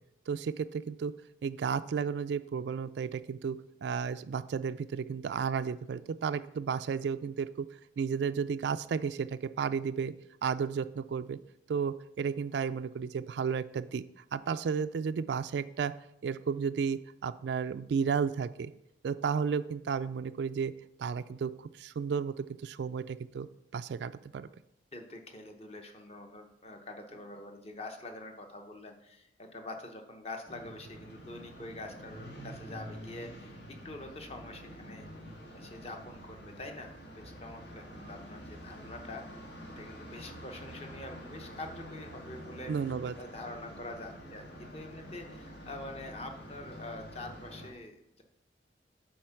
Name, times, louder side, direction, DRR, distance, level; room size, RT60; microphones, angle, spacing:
voice 1, 0.3-1.1 1.4-7.7 8.0-10.1 10.4-11.4 11.7-14.0 14.3-15.9 16.2-18.7 19.0-20.7 21.0-23.5 23.7-24.5 42.7-43.1, right 6 dB, 70° right, 13 dB, 0.3 m, -33 dB
voice 2, 24.9-33.6 33.8-35.1 35.5-39.4 39.7-42.7 43.1-44.5 44.7-48.2, left 2 dB, 35° left, 5 dB, 0.8 m, -45 dB
sound 1, 30.4-47.7, equal, 85° left, 1.8 m, -47 dB
7.6 x 4.4 x 5.7 m, 0.80 s
head